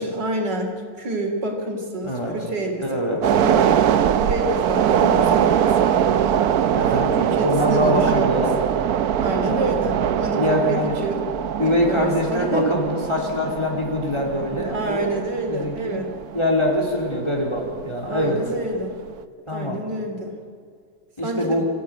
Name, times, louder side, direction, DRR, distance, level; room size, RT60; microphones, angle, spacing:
voice 1, 0.0-3.7 4.2-8.3 9.1-11.2 11.9-12.7 14.7-16.1 18.1-19.0 19.5-20.4 21.2-21.7, right 1 dB, 85° right, 2 dB, 3.8 m, -28 dB
voice 2, 2.0-2.4 2.8-3.2 6.7-7.1 7.4-8.5 9.4-9.8 10.4-11.0 11.6-15.1 15.5-16.0 16.3-18.4 19.5-19.8 21.2-21.7, left 1 dB, 15° left, 0 dB, 4.0 m, -23 dB
sound 1, 3.2-17.8 18.1-18.3, right 9 dB, 65° right, 1.2 m, -22 dB
26.5 x 15.0 x 9.2 m, 2.1 s
omnidirectional pair, 1.8 m